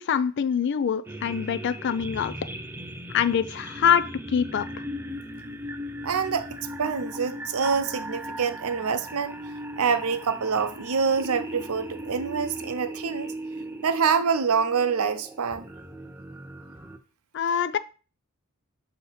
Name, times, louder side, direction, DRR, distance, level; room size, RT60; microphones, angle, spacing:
voice 1, 0.0-2.3 3.1-4.7 17.3-17.8, left 8 dB, 55° left, 0.4 m, -24 dB
sound 1, 1.0-17.0, right 1 dB, 10° right, 0.4 m, -38 dB
voice 2, 6.0-6.5 6.8-9.3 9.8-13.3 13.8-15.7, right 6 dB, 80° right, 0.6 m, -26 dB
6.3 x 2.8 x 5.6 m
head